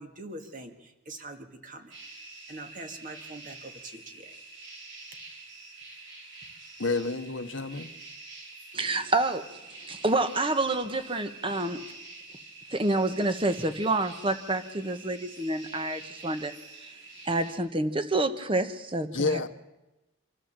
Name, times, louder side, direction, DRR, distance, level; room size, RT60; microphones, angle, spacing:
voice 1, 0.0-1.9 2.5-4.4, right 2 dB, 40° right, 2.0 m, -43 dB
sound 1, 1.9-17.5, right 3 dB, 60° right, 4.8 m, -47 dB
voice 2, 6.8-7.9 19.1-19.5, left 3 dB, 65° left, 1.0 m, -29 dB
voice 3, 8.7-9.4 9.9-11.8 12.7-16.5 17.3-19.4, right 2 dB, 25° right, 1.2 m, -28 dB
26.0 x 13.5 x 7.6 m
head